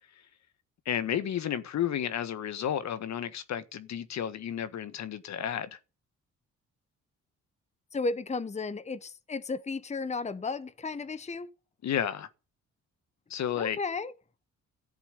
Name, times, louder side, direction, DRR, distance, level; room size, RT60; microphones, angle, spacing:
voice 1, 0.8-5.8 11.8-12.3 13.3-13.8, left 9 dB, 65° left, 1.5 m, -32 dB
voice 2, 7.9-11.5 13.5-14.1, left 3 dB, 20° left, 1.0 m, -34 dB
14.0 x 7.2 x 9.8 m
cardioid pair, 90°, 30 cm